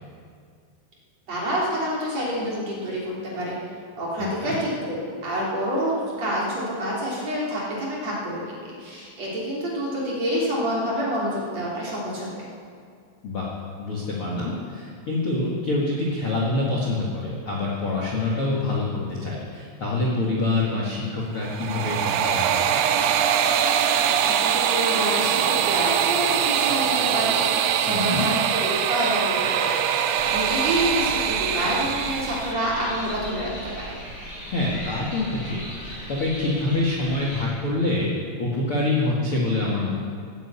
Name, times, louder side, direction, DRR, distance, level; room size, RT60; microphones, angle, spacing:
voice 1, 1.3-3.6 4.0-5.9 6.2-12.5 24.2-33.9, equal, 40° right, -5 dB, 3.4 m, -28 dB
voice 2, 4.2-4.5 13.2-13.5 13.8-22.6 23.0-23.1 27.9-28.3 34.5-38.1 38.4-39.9, left 2 dB, 60° left, -4 dB, 1.4 m, -26 dB
sound 1, 21.4-32.5, right 9 dB, 85° right, 3.5 m, -23 dB
sound 2, 30.2-37.4, equal, 15° left, 4.3 m, -36 dB
17.5 x 10.0 x 8.3 m, 2.2 s
omnidirectional pair, 5.9 m